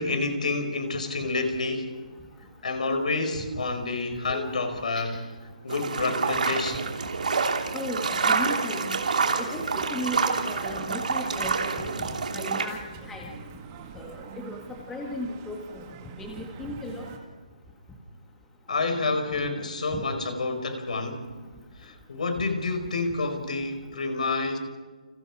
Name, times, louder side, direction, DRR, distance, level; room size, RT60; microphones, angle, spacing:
voice 1, 0.0-1.9 2.6-5.2 5.6-6.9 18.7-21.3 21.8-24.6, left 3 dB, 60° left, 7 dB, 4.9 m, -28 dB
voice 2, 4.3-4.6 4.9-5.2 7.7-9.0 9.4-12.1 12.3-12.8 13.1-13.3 14.0-14.6 14.9-15.8 16.1-17.1 19.9-20.0, left 1 dB, 5° left, -1 dB, 1.8 m, -35 dB
sound 1, 5.7-12.7, right 4 dB, 65° right, 3.0 m, -27 dB
sound 2, 9.5-17.2, right 7 dB, 20° right, 1.9 m, -46 dB
29.5 x 28.5 x 4.9 m, 1.4 s
hypercardioid pair, 170°, 4 cm